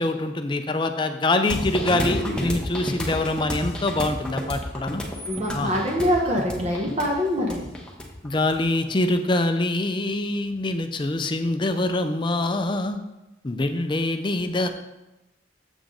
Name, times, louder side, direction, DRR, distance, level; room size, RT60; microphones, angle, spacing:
voice 1, 0.0-5.0 5.5-5.7 8.2-13.1 13.4-14.7, left 2 dB, 25° left, 7 dB, 0.5 m, -24 dB
sound 1, 1.5-9.0, equal, 5° left, 1.0 m, -30 dB
voice 2, 5.3-7.6, equal, 35° right, 0 dB, 1.1 m, -24 dB
7.1 x 7.0 x 3.8 m, 0.98 s
head